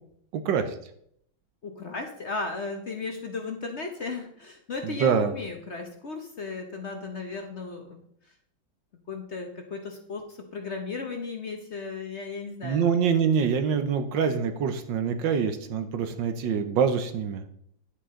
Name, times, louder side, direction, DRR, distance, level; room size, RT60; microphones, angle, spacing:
voice 1, 0.3-0.7 4.8-5.3 12.6-17.4, right 7 dB, 75° right, 9 dB, 1.5 m, -25 dB
voice 2, 1.6-8.0 9.1-12.9, left 4 dB, 45° left, 4 dB, 1.0 m, -35 dB
10.5 x 8.2 x 3.7 m, 0.69 s
omnidirectional pair, 2.1 m